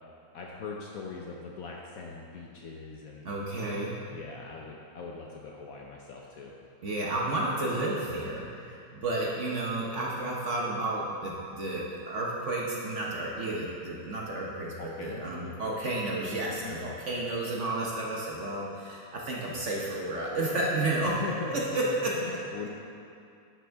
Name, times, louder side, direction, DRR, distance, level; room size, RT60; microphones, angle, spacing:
voice 1, 0.3-3.3 4.1-6.6 14.8-15.6 16.5-16.8 21.0-22.7, left 4 dB, 65° left, -1 dB, 0.9 m, -41 dB
voice 2, 3.2-4.0 6.8-21.2 21.5-22.1, right 2 dB, 50° right, -3 dB, 1.0 m, -31 dB
11.0 x 6.2 x 3.4 m, 2.5 s
omnidirectional pair, 2.0 m